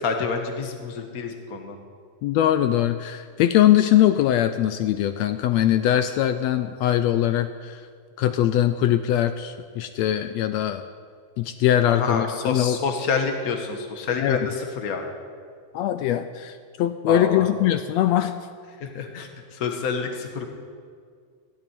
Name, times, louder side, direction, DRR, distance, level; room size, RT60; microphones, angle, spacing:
voice 1, 0.0-1.8 11.9-15.1 17.1-17.5 18.8-20.4, left 5 dB, 40° left, 4 dB, 1.3 m, -28 dB
voice 2, 2.2-7.8 8.2-10.8 11.4-12.8 14.2-14.5 15.7-18.3, left 11 dB, 80° left, 10 dB, 1.6 m, -21 dB
16.0 x 7.7 x 9.9 m, 2.1 s
omnidirectional pair, 3.3 m